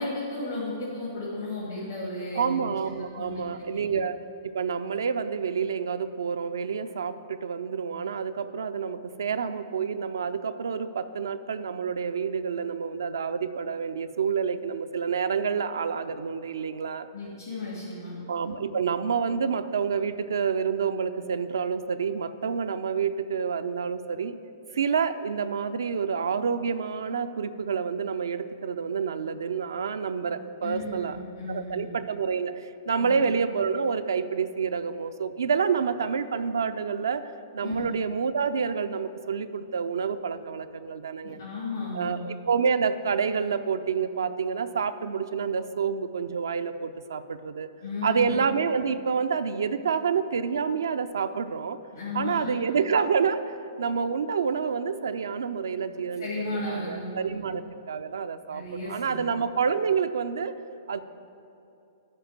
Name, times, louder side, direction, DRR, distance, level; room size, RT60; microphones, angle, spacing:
voice 1, 0.0-2.6 3.1-3.4 3.7-3.8 17.1-18.1 30.6-31.8 33.0-33.2 37.6-37.9 41.2-42.1 47.8-48.3 51.9-52.5 56.2-57.5 58.5-59.3, left 2 dB, 70° left, -7 dB, 2.5 m, -34 dB
voice 2, 2.3-17.1 18.3-24.4 24.7-31.2 31.5-41.4 41.9-47.7 48.0-51.8 52.1-53.4 53.8-56.3 56.7-57.6 57.9-60.5 60.9-61.0, right 6 dB, 70° right, 10 dB, 0.4 m, -28 dB
12.0 x 4.3 x 7.4 m, 2.7 s
figure-of-eight pair, 110°, 2 cm